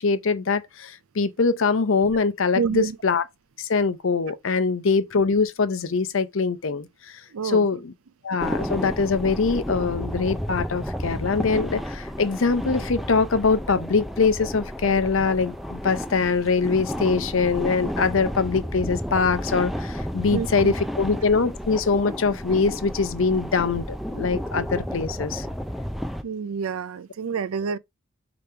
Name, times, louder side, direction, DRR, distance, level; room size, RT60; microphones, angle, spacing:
voice 1, 0.0-3.2 3.6-7.9 8.2-25.5, left 4 dB, 70° left, 0.6 m, -23 dB
voice 2, 2.5-3.0 7.3-7.7 20.3-20.7 26.2-27.8, right 6 dB, 90° right, 0.5 m, -28 dB
sound 1, 8.4-26.2, equal, ahead, 0.3 m, -32 dB
5.2 x 2.9 x 3.3 m
head